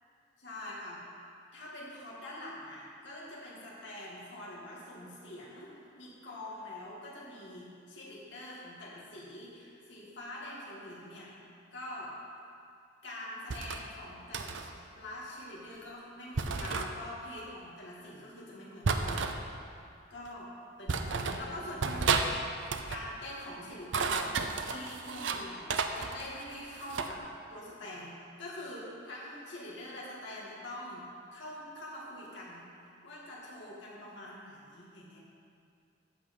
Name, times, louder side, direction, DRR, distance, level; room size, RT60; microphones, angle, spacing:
voice 1, 0.4-1.1 1.5-11.3 11.7-12.1 13.0-19.7 20.1-20.5 20.8-22.3 22.9-27.2 27.5-35.2, left 1 dB, 65° left, -6 dB, 2.1 m, -45 dB
sound 1, 13.5-13.8 14.3-14.7 16.4-16.9 18.8-19.4 20.3-20.4 20.9-21.4 21.8-22.3 22.6-23.0 23.7-25.4 25.7-27.1, right 4 dB, 75° right, 0.6 m, -32 dB
14.5 x 5.5 x 5.4 m, 2.4 s
head